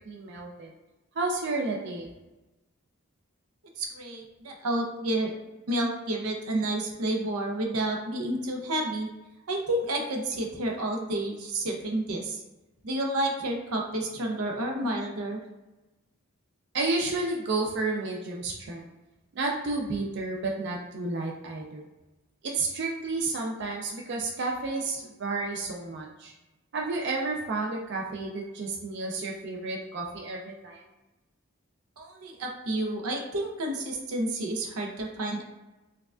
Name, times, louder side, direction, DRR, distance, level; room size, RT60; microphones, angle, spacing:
voice 1, 0.1-0.7 1.2-2.1 16.7-18.8 19.3-21.8 22.5-26.3 26.7-30.8, right 3 dB, 55° right, -1 dB, 0.4 m, -31 dB
voice 2, 3.8-5.3 5.7-9.1 9.5-12.4 12.8-15.4 32.0-35.4, right 1 dB, 90° right, 1 dB, 0.7 m, -30 dB
4.6 x 2.3 x 2.4 m, 1.1 s
head